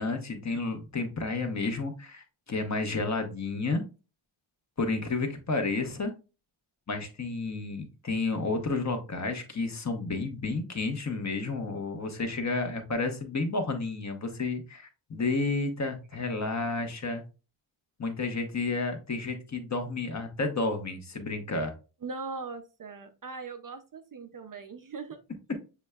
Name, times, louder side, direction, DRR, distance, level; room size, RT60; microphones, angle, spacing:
voice 1, 0.0-3.8 4.8-6.1 6.9-17.2 18.0-21.7, left 3 dB, 35° left, 6 dB, 0.9 m, -31 dB
voice 2, 22.0-25.2, right 4 dB, 40° right, 7 dB, 0.5 m, -40 dB
6.9 x 3.2 x 2.3 m, 0.32 s
wide cardioid pair, 130°, 50 cm